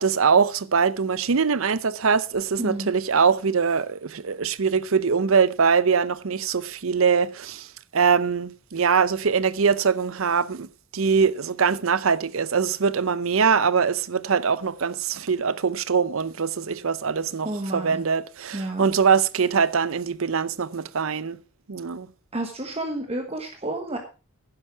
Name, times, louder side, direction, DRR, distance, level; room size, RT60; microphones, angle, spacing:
voice 1, 0.0-7.7 7.9-10.7 10.9-21.4 21.7-22.1, right 6 dB, 65° right, 0.6 m, -22 dB
voice 2, 2.6-2.9 17.4-18.0 18.5-18.8 22.3-24.0, right 1 dB, 30° right, 1.3 m, -30 dB
11.0 x 10.0 x 4.5 m
head